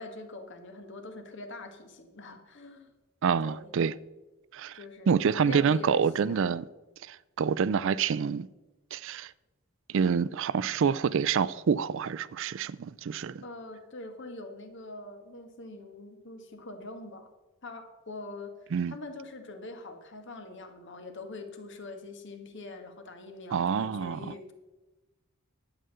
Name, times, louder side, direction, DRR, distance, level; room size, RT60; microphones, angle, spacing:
voice 1, 0.0-2.9 3.4-3.7 4.7-6.5 13.4-17.3 17.6-18.5 18.9-24.5, left 2 dB, 55° left, 1.7 m, -43 dB
voice 2, 3.2-3.9 4.5-4.8 5.1-6.6 7.0-8.5 8.9-9.3 9.9-13.4 18.7-18.9 23.5-24.3, right 6 dB, 60° right, 0.4 m, -27 dB
11.0 x 7.8 x 6.8 m
head